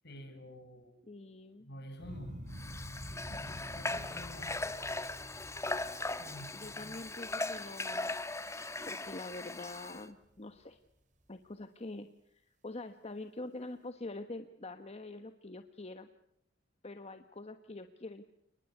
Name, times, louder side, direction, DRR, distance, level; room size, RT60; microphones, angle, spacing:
voice 1, 0.0-0.9 1.6-2.4 3.1-4.5 6.2-6.9, equal, 60° left, 6 dB, 6.4 m, -49 dB
voice 2, 1.0-1.7 6.5-8.2 8.8-10.8 11.3-12.1 12.3-16.1 16.8-18.2, left 2 dB, 35° left, 8 dB, 1.3 m, -45 dB
sound 1, 2.0-8.3 8.8-9.3, equal, 40° right, 2.7 m, -48 dB
Water / Water tap faucet, 2.5-10.0, left 2 dB, 15° left, 1.2 m, -39 dB
29.0 x 20.5 x 8.3 m, 0.75 s
head